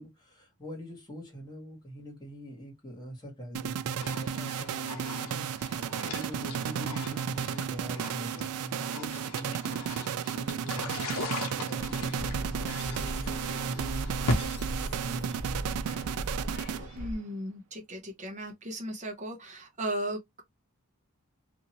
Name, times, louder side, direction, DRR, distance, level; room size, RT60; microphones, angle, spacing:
voice 1, 0.0-5.7 6.0-16.0, right 1 dB, 20° left, 1.4 m, -43 dB
sound 1, 3.5-17.2, right 8 dB, 75° right, 0.3 m, -34 dB
sound 2, 4.0-14.4, left 2 dB, 80° left, 0.9 m, -38 dB
sound 3, 11.8-17.2, right 1 dB, 50° left, 1.0 m, -38 dB
voice 2, 17.0-20.4, right 1 dB, 35° right, 0.8 m, -36 dB
2.7 x 2.5 x 2.8 m
head